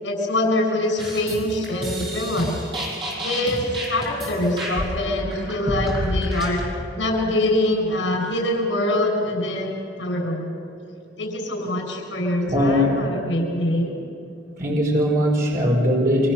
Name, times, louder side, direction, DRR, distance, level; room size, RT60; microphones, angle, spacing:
voice 1, 0.0-2.6 3.2-6.6 7.0-10.5 11.2-13.9, left 1 dB, 75° left, 1 dB, 7.1 m, -24 dB
sound 1, 1.0-6.7, equal, 25° right, 7.5 m, -30 dB
voice 2, 12.5-13.0 14.6-16.3, equal, 50° right, -2 dB, 4.7 m, -20 dB
29.0 x 26.5 x 7.0 m, 2.5 s
head